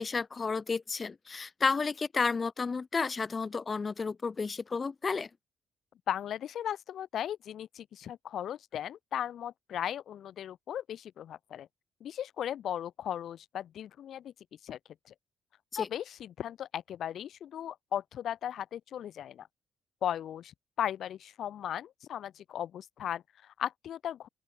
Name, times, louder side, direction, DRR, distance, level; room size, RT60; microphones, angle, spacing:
voice 1, 0.0-5.3 15.7-15.9, left 4 dB, 35° left, 4.7 m, -32 dB
voice 2, 6.1-11.7 12.0-14.3 14.6-14.8 15.1-15.2 15.8-19.5 20.0-20.5 20.8-24.3, left 10 dB, 70° left, 3.3 m, -37 dB
open air
cardioid pair, 90°, 0 cm